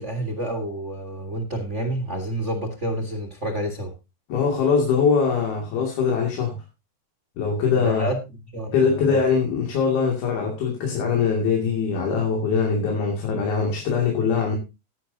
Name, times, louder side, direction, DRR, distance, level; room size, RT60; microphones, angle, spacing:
voice 1, 0.0-3.9 7.7-8.2 8.5-9.2, right 1 dB, 40° right, 4 dB, 0.9 m, -29 dB
voice 2, 4.3-6.6 7.4-8.1 8.7-14.6, left 5 dB, 80° left, 0 dB, 4.5 m, -22 dB
15.5 x 11.0 x 2.8 m, 0.26 s
omnidirectional pair, 4.3 m